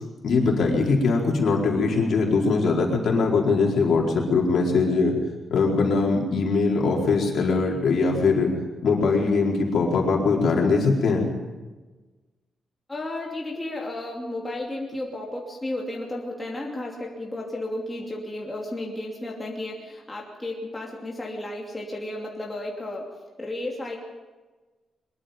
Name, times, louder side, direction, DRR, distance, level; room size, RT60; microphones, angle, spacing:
voice 1, 0.2-5.2 5.5-8.5 8.8-11.3, left 4 dB, 55° left, 0 dB, 4.5 m, -21 dB
voice 2, 12.9-23.1 23.4-24.0, left 1 dB, 10° left, -2 dB, 2.8 m, -33 dB
22.5 x 22.5 x 5.3 m, 1.2 s
wide cardioid pair, 180°, 0 cm